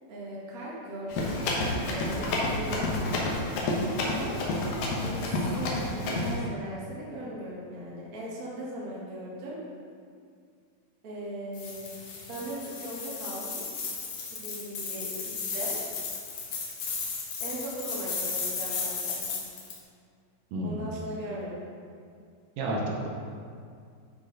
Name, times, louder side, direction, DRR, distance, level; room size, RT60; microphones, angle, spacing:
voice 1, 0.1-3.0 4.0-4.4 5.0-9.6 11.0-11.9 12.3-13.6 14.3-15.8 17.4-19.4 20.6-21.7, right 1 dB, 40° right, -6 dB, 1.2 m, -38 dB
Run, 1.1-6.4, left 2 dB, 75° left, 2.8 m, -29 dB
sound 1, 11.5-19.8, left 5 dB, 60° left, 1.9 m, -35 dB
voice 2, 22.6-23.1, right 1 dB, 75° right, -1 dB, 2.5 m, -30 dB
11.5 x 4.5 x 4.0 m, 2.2 s
omnidirectional pair, 4.1 m